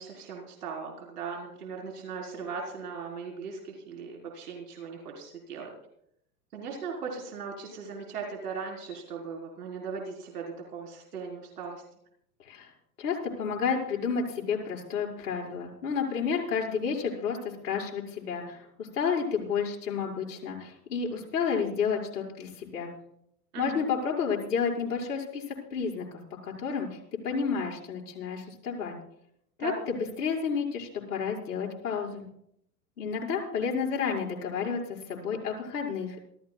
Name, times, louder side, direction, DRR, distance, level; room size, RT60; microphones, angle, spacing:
voice 1, 0.0-5.7 6.5-11.8 23.5-23.8 29.6-29.8, right 5 dB, 70° right, 0 dB, 4.5 m, -38 dB
voice 2, 13.0-17.4 17.6-22.9 23.6-25.4 25.7-26.1 26.4-26.9 27.2-28.9 29.6-32.3 33.0-34.8 35.1-36.3, left 6 dB, 70° left, -2 dB, 5.8 m, -31 dB
27.5 x 15.5 x 2.4 m, 0.72 s
figure-of-eight pair, 100°, 48 cm